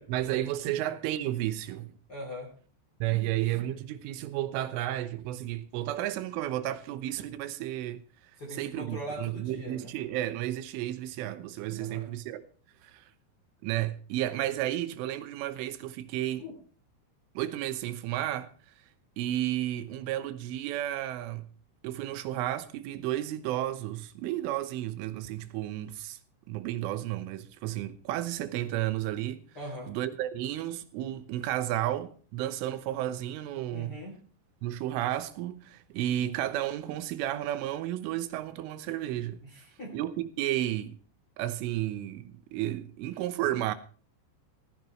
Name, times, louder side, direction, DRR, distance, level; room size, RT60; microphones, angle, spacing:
voice 1, 0.0-1.9 3.0-8.0 8.5-12.4 12.8-13.1 13.6-16.4 17.4-18.5 19.2-21.5 21.8-26.2 26.5-29.4 29.9-34.0 34.6-39.4 39.9-41.0 41.4-43.8, right 13 dB, 80° right, 3.4 m, -32 dB
voice 2, 2.1-2.5 8.4-9.9 11.8-12.0 16.4-16.5 29.5-29.9 33.7-34.2 39.4-39.9, equal, 25° left, 2.7 m, -41 dB
16.5 x 15.0 x 3.2 m
omnidirectional pair, 5.7 m